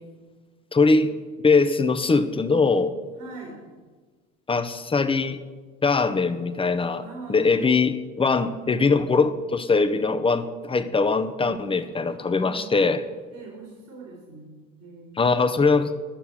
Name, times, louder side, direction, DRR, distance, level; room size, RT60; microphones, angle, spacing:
voice 1, 0.7-1.1 1.4-2.9 4.5-5.4 5.8-7.0 7.3-13.0 15.2-15.9, left 4 dB, 15° left, 11 dB, 0.8 m, -21 dB
voice 2, 3.2-3.6 7.0-7.6 12.1-12.7 13.3-14.5 14.8-15.2, right 3 dB, 60° right, -1 dB, 3.3 m, -42 dB
11.5 x 6.9 x 7.5 m, 1.4 s
figure-of-eight pair, 70°, 39 cm